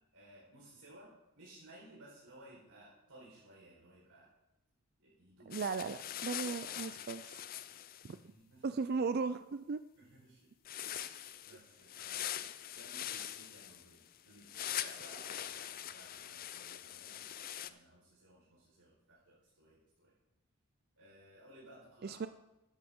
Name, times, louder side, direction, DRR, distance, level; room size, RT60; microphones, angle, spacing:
voice 1, 0.1-4.3 5.0-5.6 8.0-8.8 10.0-10.5 10.8-14.0 14.2-20.1 21.0-22.2, right 1 dB, 90° right, -7 dB, 4.4 m, -59 dB
sound 1, 5.5-8.1 10.6-17.7, left 11 dB, 40° left, 0.4 m, -43 dB
voice 2, 5.5-7.3 8.6-9.8 22.0-22.3, right 4 dB, 45° right, 11 dB, 0.4 m, -36 dB
13.0 x 11.0 x 3.7 m, 0.93 s
head